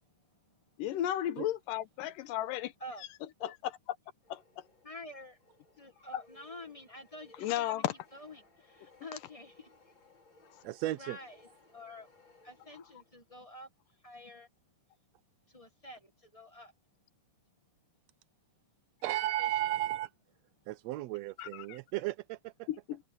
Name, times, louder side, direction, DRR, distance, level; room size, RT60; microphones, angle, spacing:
voice 1, 0.8-2.7 3.4-4.0 4.3-4.4 6.1-6.2 7.4-7.9 21.4-21.8 22.7-23.0, left 12 dB, 85° left, 2.6 m, -34 dB
sound 1, 4.2-13.3, left 2 dB, 35° left, 4.8 m, -63 dB
voice 2, 4.8-5.4 5.8-7.8 8.1-9.7 10.9-12.1 12.4-13.7 14.0-14.5 15.5-16.7 19.4-19.5, left 1 dB, 20° left, 1.0 m, -48 dB
voice 3, 10.6-11.2 19.0-20.1 20.7-22.7, right 15 dB, 80° right, 1.5 m, -34 dB
omnidirectional pair, 3.7 m